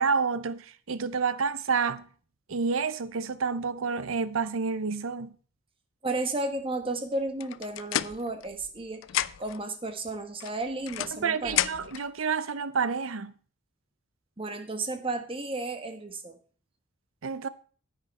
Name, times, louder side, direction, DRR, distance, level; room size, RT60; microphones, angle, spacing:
voice 1, 0.0-2.0 2.5-5.3 11.1-13.3 17.2-17.5, right 5 dB, 85° right, 0.7 m, -29 dB
voice 2, 6.0-9.0 9.4-11.7 14.4-16.4, right 2 dB, 25° right, 1.2 m, -33 dB
sound 1, 7.4-8.8 9.0-9.6 10.4-12.1, left 12 dB, 70° left, 0.4 m, -32 dB
10.0 x 8.7 x 4.2 m
head